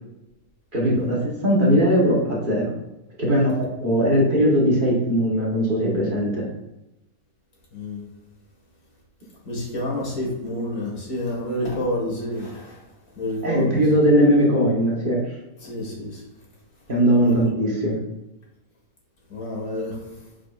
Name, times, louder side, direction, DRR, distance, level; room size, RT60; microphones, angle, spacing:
voice 1, 0.7-2.7 3.2-6.5 13.4-15.2 16.9-18.0, equal, 35° right, -4 dB, 1.4 m, -19 dB
voice 2, 7.7-8.0 9.5-12.8 13.2-13.8 15.6-16.2 17.2-17.4 19.3-20.3, left 1 dB, 75° left, -3 dB, 2.5 m, -29 dB
7.4 x 5.3 x 2.5 m, 0.96 s
omnidirectional pair, 1.6 m